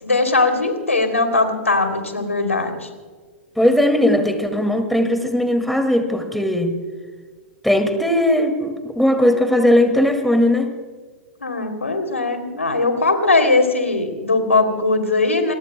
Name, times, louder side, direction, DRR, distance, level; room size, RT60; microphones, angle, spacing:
voice 1, 0.0-2.9 11.4-15.5, left 3 dB, 85° left, 6 dB, 3.0 m, -19 dB
voice 2, 3.6-6.8 7.6-10.7, left 1 dB, ahead, 7 dB, 2.1 m, -18 dB
29.0 x 22.5 x 2.2 m, 1.5 s
figure-of-eight pair, 100°, 7 cm